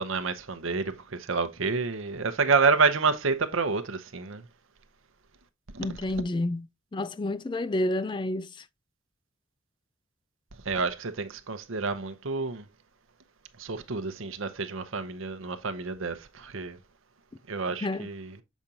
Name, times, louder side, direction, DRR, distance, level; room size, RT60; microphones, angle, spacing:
voice 1, 0.0-4.4 10.7-12.6 13.6-16.8 17.5-18.3, right 4 dB, 70° right, 0.8 m, -28 dB
voice 2, 5.8-6.7 6.9-8.5 17.8-18.1, left 1 dB, 20° left, 0.3 m, -29 dB
7.2 x 5.0 x 2.8 m
head